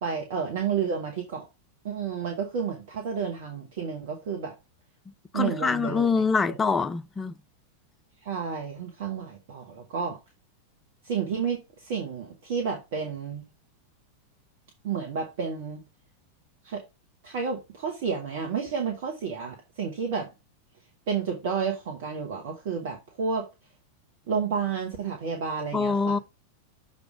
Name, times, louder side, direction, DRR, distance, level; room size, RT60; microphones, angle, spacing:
voice 1, 0.0-1.4 1.8-4.5 5.3-6.2 6.5-6.6 8.2-10.2 11.0-13.4 14.8-15.8 16.6-16.8 17.2-20.3 21.1-23.5 24.3-26.2, right 6 dB, 50° right, 1.3 m, -31 dB
voice 2, 5.3-7.3 25.7-26.2, left 5 dB, 15° left, 0.4 m, -25 dB
6.8 x 3.2 x 4.9 m
figure-of-eight pair, 90°, 0 cm